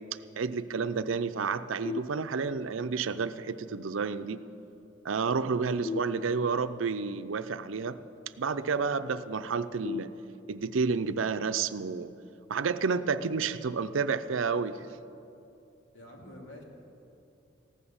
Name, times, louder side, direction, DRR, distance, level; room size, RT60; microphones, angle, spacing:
voice 1, 0.4-4.4 5.0-8.0 8.4-10.1 10.5-12.1 12.5-14.8, right 5 dB, 90° right, 12 dB, 0.5 m, -30 dB
sound 1, 1.8-2.8 5.8-6.8 9.8-10.8, left 5 dB, 25° left, 0.3 m, -39 dB
voice 2, 15.9-16.6, left 1 dB, 75° left, -1 dB, 2.5 m, -47 dB
15.0 x 11.0 x 7.0 m, 2.8 s
head